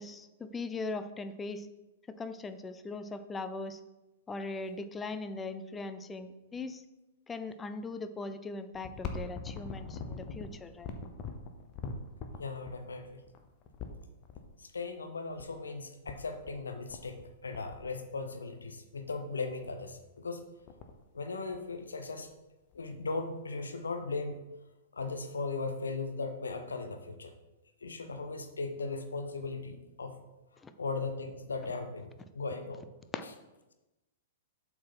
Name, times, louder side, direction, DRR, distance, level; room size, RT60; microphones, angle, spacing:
voice 1, 0.0-1.7 2.1-3.8 4.3-6.8 7.3-10.9 30.6-30.7 33.1-33.2, left 3 dB, 15° left, 10 dB, 0.5 m, -40 dB
sound 1, 8.7-14.4 15.4-15.5 15.7-15.8 16.1-16.6 16.9-17.3 17.5-18.4 19.0-19.1 19.5-19.8 20.2-20.3 20.4-21.0 21.5-22.3 22.7-22.8 23.7-23.8, left 4 dB, 30° left, 0.9 m, -42 dB
voice 2, 12.4-13.2 14.6-20.4 21.1-22.3 22.7-24.4 24.9-27.3 27.8-30.2 30.8-32.8, left 3 dB, 70° left, 6 dB, 0.9 m, -38 dB
7.3 x 4.7 x 5.8 m, 1.0 s
figure-of-eight pair, 105°, 0 cm